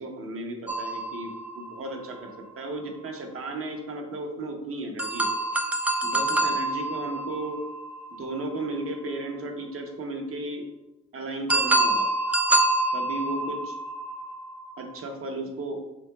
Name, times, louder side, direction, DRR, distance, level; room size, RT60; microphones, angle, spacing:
voice 1, 0.0-2.3 2.6-5.3 6.0-7.6 8.2-10.6 11.1-12.1 12.9-13.8 14.8-15.8, right 2 dB, 45° right, 3 dB, 0.9 m, -34 dB
sound 1, 0.7-2.4 5.0-8.9 11.5-15.0, right 2 dB, 5° right, 0.3 m, -27 dB
5.9 x 3.7 x 2.3 m, 0.99 s
cardioid pair, 90°, 30 cm